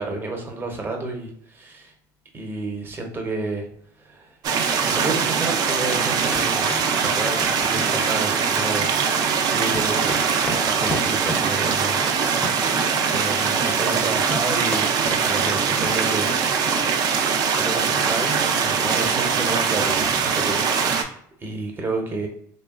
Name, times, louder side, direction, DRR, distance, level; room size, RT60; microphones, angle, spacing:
voice 1, 0.0-1.9 2.3-3.7 4.0-4.3 4.8-8.9 9.5-12.6 13.1-14.9 15.2-16.3 17.6-22.3, right 2 dB, 25° right, 2 dB, 0.7 m, -31 dB
sound 1, 4.4-21.0, right 6 dB, 55° right, 0.4 m, -22 dB
sound 2, 4.7-5.2 5.5-5.6 5.9-6.0 6.3-8.3 8.6-9.3 9.5-14.0 14.3-15.6 15.8-16.4 16.7-16.9 17.2-17.4 17.7-17.8 18.1-18.2, left 1 dB, 15° left, 0.5 m, -33 dB
3.0 x 2.2 x 2.3 m, 0.64 s
cardioid pair, 110°, 8 cm